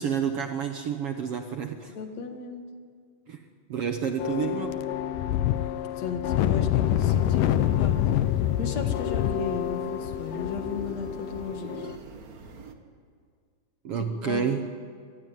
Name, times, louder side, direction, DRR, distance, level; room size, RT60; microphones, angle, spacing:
voice 1, 0.0-1.9 3.3-3.4 3.7-4.8 13.8-14.6, right 7 dB, 60° right, 6 dB, 1.6 m, -29 dB
voice 2, 1.9-2.6 6.0-11.9 14.0-14.6, left 5 dB, 60° left, 6 dB, 2.7 m, -35 dB
sound 1, 4.2-12.0, left 11 dB, 90° left, 2.5 m, -27 dB
sound 2, 6.9-12.7, right 5 dB, 45° right, 1.3 m, -45 dB
26.0 x 19.5 x 9.1 m, 2.1 s
omnidirectional pair, 3.7 m